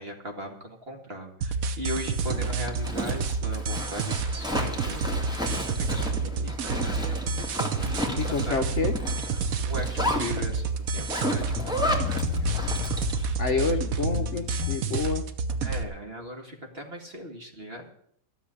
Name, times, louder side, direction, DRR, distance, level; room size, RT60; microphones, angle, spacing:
voice 1, 0.0-5.3 5.7-8.2 8.4-8.7 9.3-12.7 13.1-13.4 15.6-17.9, equal, 35° right, 3 dB, 2.3 m, -39 dB
sound 1, 1.4-15.8, right 4 dB, 60° right, 1.3 m, -29 dB
Zipper (clothing), 2.0-13.3, left 1 dB, 5° right, 1.9 m, -33 dB
voice 2, 8.1-8.9 12.0-12.5 13.4-15.3, left 4 dB, 50° left, 6 dB, 1.1 m, -29 dB
sound 2, 11.5-14.8, left 13 dB, 85° left, 1.3 m, -33 dB
13.0 x 7.3 x 9.8 m, 0.67 s
omnidirectional pair, 1.8 m